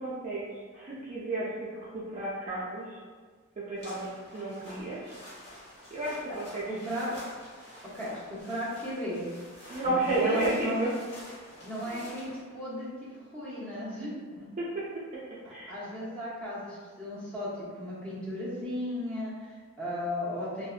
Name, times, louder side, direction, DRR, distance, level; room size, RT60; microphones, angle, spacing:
voice 1, 0.0-3.0 3.6-5.1 5.9-6.7 9.7-10.9 11.8-12.0 14.6-14.9 15.1-15.2 15.5-15.7, right 2 dB, 35° right, -7 dB, 0.3 m, -32 dB
sound 1, 3.8-12.4, left 1 dB, 55° left, 1.0 m, -49 dB
voice 2, 6.3-7.2 7.8-9.3 9.8-10.9 11.6-14.5 15.7-20.7, equal, 5° left, -10 dB, 0.7 m, -36 dB
2.6 x 2.1 x 2.3 m, 1.6 s
head